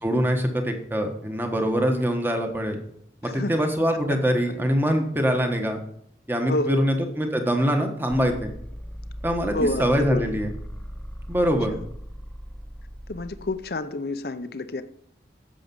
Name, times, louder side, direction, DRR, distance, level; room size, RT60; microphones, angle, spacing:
voice 1, 0.0-2.8 3.2-5.8 6.3-8.5 9.2-10.5 11.3-11.7, equal, 10° right, 4 dB, 1.3 m, -23 dB
voice 2, 3.2-3.5 6.5-6.9 9.5-10.4 11.7-11.8 13.1-14.8, left 2 dB, 60° left, 11 dB, 0.6 m, -29 dB
sound 1, 8.1-13.6, equal, 5° left, 0.7 m, -38 dB
10.0 x 7.3 x 5.4 m, 0.73 s
head